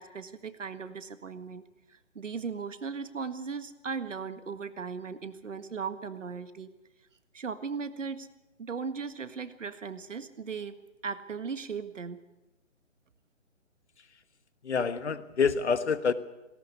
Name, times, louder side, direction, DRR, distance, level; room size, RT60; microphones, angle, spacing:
voice 1, 0.0-1.6 2.2-6.7 7.3-8.3 8.6-10.8 11.0-12.2, right 5 dB, 75° right, 11 dB, 1.8 m, -37 dB
voice 2, 14.6-16.1, left 6 dB, 60° left, 13 dB, 1.4 m, -27 dB
18.0 x 18.0 x 8.3 m, 1.0 s
hypercardioid pair, 170°, 38 cm